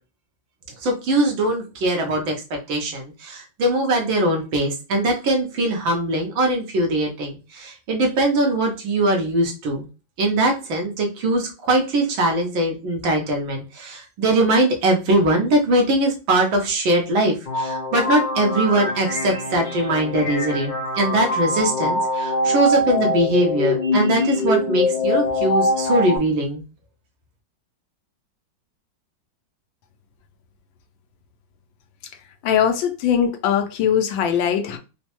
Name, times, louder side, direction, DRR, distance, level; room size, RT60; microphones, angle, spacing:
voice 1, 0.8-9.9 10.2-26.6, right 1 dB, 85° right, 1 dB, 1.8 m, -21 dB
sound 1, 17.5-26.2, left 2 dB, 75° left, 0.4 m, -23 dB
voice 2, 32.4-34.8, left 8 dB, 90° left, 6 dB, 1.4 m, -20 dB
4.3 x 2.1 x 2.9 m, 0.30 s
omnidirectional pair, 2.1 m